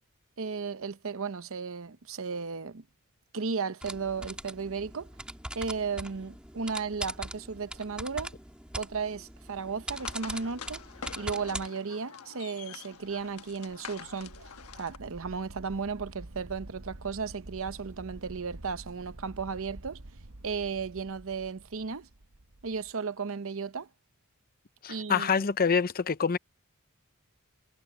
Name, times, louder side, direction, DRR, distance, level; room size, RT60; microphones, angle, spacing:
voice 1, 0.4-2.8 3.3-5.1 5.5-8.3 8.8-10.8 11.2-14.3 14.8-20.0 20.4-22.1 22.6-23.9 24.9-25.5, right 5 dB, 65° right, 0.8 m, -35 dB
sound 1, 3.8-11.7, right 1 dB, 5° right, 3.2 m, -41 dB
sound 2, 9.9-15.0, left 6 dB, 90° left, 1.2 m, -46 dB
sound 3, 12.9-22.9, right 1 dB, 85° right, 1.3 m, -49 dB
voice 2, 24.8-26.4, left 6 dB, 45° left, 0.7 m, -26 dB
head